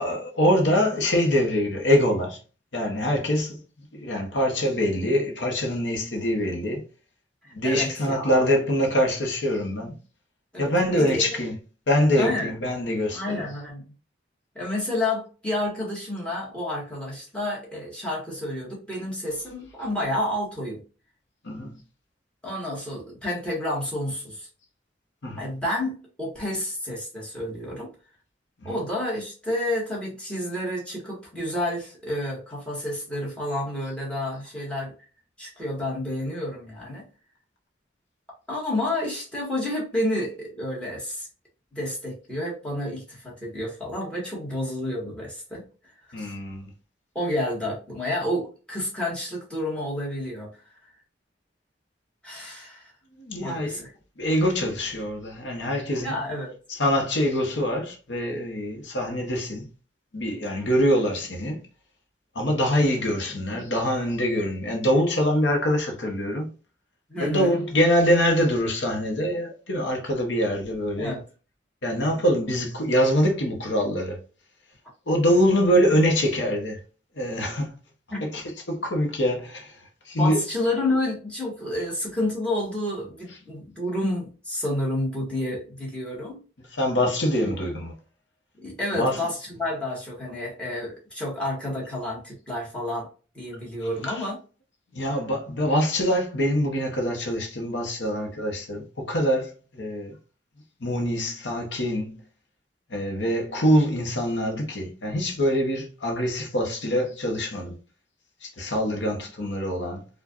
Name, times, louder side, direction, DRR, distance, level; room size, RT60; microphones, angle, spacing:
voice 1, 0.0-2.4 2.7-3.6 3.9-6.8 7.5-10.0 10.6-11.5 11.9-13.4 21.4-21.7 25.2-25.4 28.6-28.8 46.1-46.7 53.2-53.8 54.2-56.2 56.7-59.7 60.1-61.6 62.3-66.5 67.2-71.2 71.8-74.2 75.1-76.8 77.2-77.8 78.2-80.4 86.7-87.9 88.9-89.2 94.0-94.3 94.9-100.2 100.8-102.1 102.9-107.8 108.4-110.1, equal, 75° left, 1.0 m, -24 dB
voice 2, 7.6-8.4 10.5-11.2 12.2-12.5 13.1-13.8 14.6-20.8 22.4-24.5 25.4-27.9 28.7-34.9 35.4-37.0 38.5-41.3 41.7-45.6 46.2-46.3 47.2-50.5 52.2-52.9 53.4-53.9 56.0-56.6 67.1-67.5 71.0-71.2 78.1-78.3 80.2-86.4 88.6-93.1 93.3-94.4, left 1 dB, 5° left, 1.6 m, -30 dB
4.7 x 2.4 x 2.4 m
head